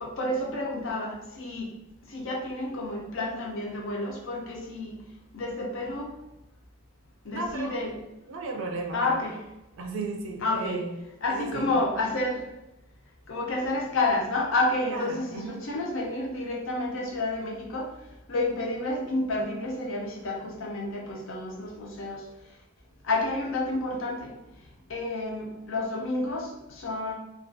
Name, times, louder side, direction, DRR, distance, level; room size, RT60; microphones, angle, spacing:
voice 1, 0.0-1.7 2.1-5.0 5.3-6.1 7.2-7.9 8.9-9.3 10.4-10.8 11.2-12.4 13.3-17.9 18.3-22.3 23.0-24.4 24.9-27.1, left 2 dB, 60° left, -1 dB, 0.5 m, -30 dB
voice 2, 7.3-7.8 8.3-9.2 9.8-11.0 11.2-11.8 14.9-15.6, right 3 dB, 65° right, 2 dB, 0.4 m, -35 dB
2.3 x 2.3 x 2.5 m, 0.92 s
head